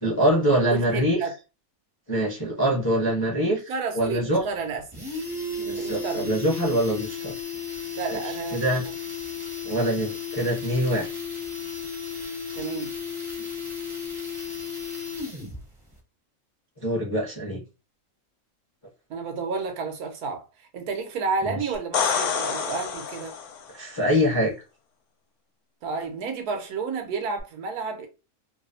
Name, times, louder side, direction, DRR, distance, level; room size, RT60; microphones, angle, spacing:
voice 1, 0.0-1.2 2.1-4.4 5.6-7.3 8.1-8.8 9.6-11.1 16.8-17.6 21.4-21.7 23.7-24.5, equal, 25° left, 0.5 m, -24 dB
voice 2, 0.7-1.3 3.4-4.8 5.7-6.3 7.9-8.9 12.5-12.9 19.1-23.4 25.8-28.1, right 4 dB, 90° right, 1.2 m, -31 dB
sound 1, 4.0-4.1 4.4-4.5 4.8-15.6 15.9-16.0, left 5 dB, 25° right, 0.5 m, -34 dB
sound 2, 21.7-23.7 27.4-27.5, left 6 dB, 85° left, 1.1 m, -27 dB
3.1 x 2.0 x 2.5 m
omnidirectional pair, 1.6 m